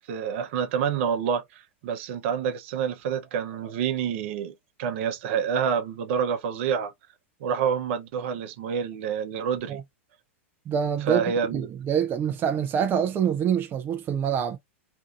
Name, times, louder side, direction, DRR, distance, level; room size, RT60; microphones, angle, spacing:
voice 1, 0.0-4.5 4.8-6.9 7.4-9.8 11.1-11.7, right 7 dB, 60° right, 0.7 m, -27 dB
voice 2, 10.7-14.6, right 8 dB, 30° right, 0.5 m, -26 dB
2.6 x 2.5 x 2.4 m
hypercardioid pair, 115°, 7 cm